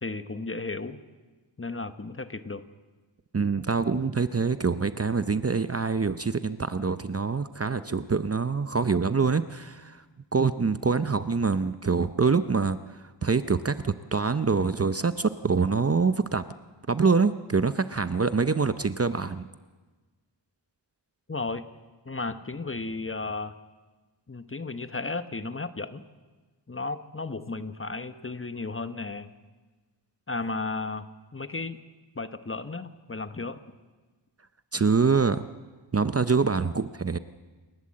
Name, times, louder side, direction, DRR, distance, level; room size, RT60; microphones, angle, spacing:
voice 1, 0.0-1.0 1.6-2.7 21.3-21.6 22.0-23.5 24.3-26.0 26.7-29.3 30.3-31.8 32.1-33.6, left 3 dB, 30° left, 11 dB, 1.0 m, -34 dB
voice 2, 3.3-10.0 10.3-12.8 13.2-16.4 16.9-19.5 34.7-35.5 35.9-37.2, right 5 dB, 35° right, 13 dB, 0.7 m, -25 dB
28.5 x 12.5 x 7.6 m, 1.3 s
wide cardioid pair, 65°, 44 cm